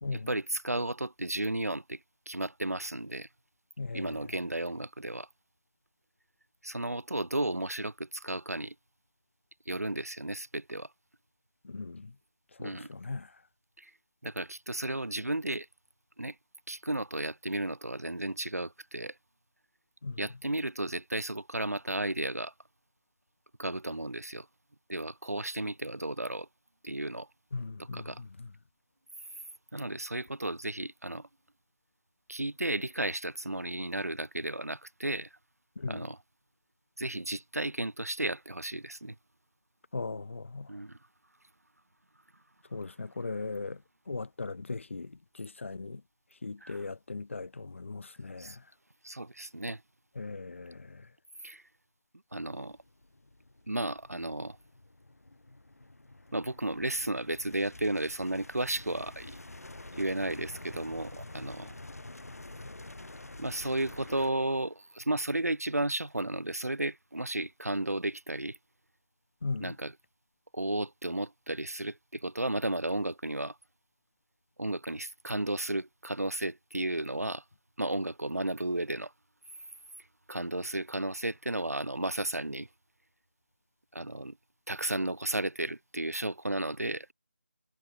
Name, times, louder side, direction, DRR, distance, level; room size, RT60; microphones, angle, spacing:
voice 1, 0.1-2.0 2.3-3.3 3.9-5.3 6.6-8.7 9.7-10.9 12.6-12.9 13.8-13.9 14.2-15.7 16.2-16.3 16.7-19.1 20.2-22.5 23.6-24.5 24.9-26.5 26.8-27.3 27.9-28.2 29.7-31.3 32.3-35.3 35.9-36.2 37.0-39.1 40.7-41.0 46.6-46.8 48.4-48.6 49.0-49.8 51.4-51.6 52.3-52.8 53.7-54.6 56.3-59.4 60.0-61.8 63.4-68.6 69.6-69.9 70.5-73.6 74.6-77.4 77.8-79.1 80.3-82.7 83.9-84.4 84.7-87.1, right 1 dB, 85° right, 1.5 m, -33 dB
voice 2, 3.8-4.2 11.6-12.1 12.6-13.3 20.0-20.2 27.5-28.5 35.8-36.1 39.9-40.7 42.7-43.8 44.1-46.0 46.4-48.6 50.2-51.1 69.4-69.8, left 3 dB, 55° left, 0.7 m, -38 dB
sound 1, 52.5-64.3, left 2 dB, 80° left, 0.9 m, -48 dB
figure-of-eight pair, 160°, 8 cm